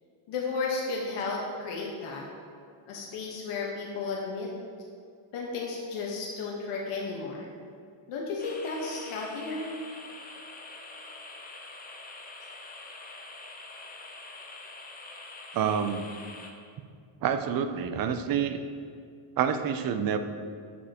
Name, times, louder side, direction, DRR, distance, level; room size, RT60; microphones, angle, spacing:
voice 1, 0.3-2.2 2.9-4.5 5.3-7.5 8.1-9.7, left 4 dB, 85° left, -2 dB, 1.2 m, -33 dB
sound 1, 8.4-16.5, left 3 dB, 20° left, 0.5 m, -45 dB
voice 2, 15.5-16.1 17.2-18.6 19.4-20.2, right 8 dB, 45° right, 8 dB, 0.5 m, -27 dB
8.3 x 7.2 x 2.9 m, 2.2 s
cardioid pair, 165°, 50 cm